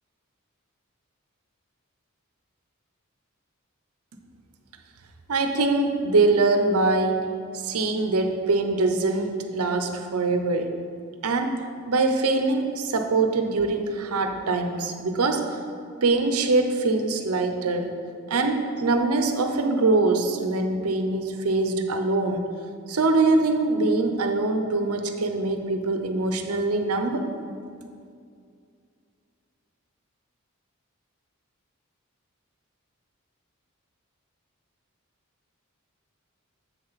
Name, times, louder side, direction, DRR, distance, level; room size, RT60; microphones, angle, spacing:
voice 1, 5.3-7.3 7.6-10.7 11.2-11.6 11.9-15.5 16.0-17.9 18.3-22.5 22.9-27.3, right 3 dB, 85° right, 6 dB, 0.7 m, -23 dB
7.4 x 6.8 x 4.1 m, 2.3 s
head